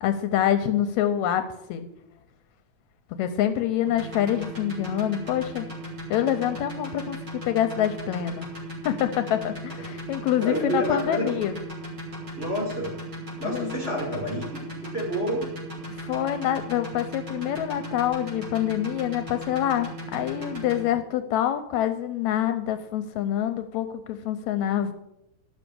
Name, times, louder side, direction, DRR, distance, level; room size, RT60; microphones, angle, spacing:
voice 1, 0.0-1.9 3.2-5.7 6.1-7.2 7.5-8.5 8.8-11.6 13.4-13.7 15.9-24.9, left 11 dB, 80° left, 8 dB, 1.8 m, -26 dB
sound 1, 3.9-20.8, equal, 35° right, 3.6 m, -37 dB
voice 2, 10.4-11.3 12.4-12.9 13.4-15.5, equal, 20° right, -1 dB, 2.6 m, -29 dB
12.0 x 6.2 x 6.8 m, 0.85 s
omnidirectional pair, 3.4 m